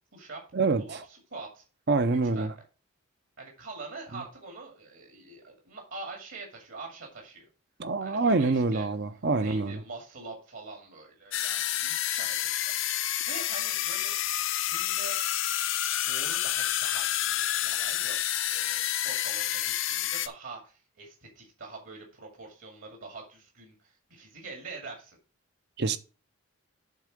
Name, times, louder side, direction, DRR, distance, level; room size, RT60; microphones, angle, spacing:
voice 1, 0.1-0.4 0.8-1.6 2.3-2.5 3.4-7.5 8.0-8.9 9.4-14.1 14.6-15.2 16.0-18.2 18.5-25.2, right 3 dB, 65° right, 2.4 m, -44 dB
voice 2, 1.9-2.5 7.8-9.8 25.8-26.0, right 3 dB, 50° right, 0.6 m, -26 dB
sound 1, 11.3-20.3, left 12 dB, 55° left, 0.6 m, -29 dB
8.5 x 3.8 x 6.4 m
head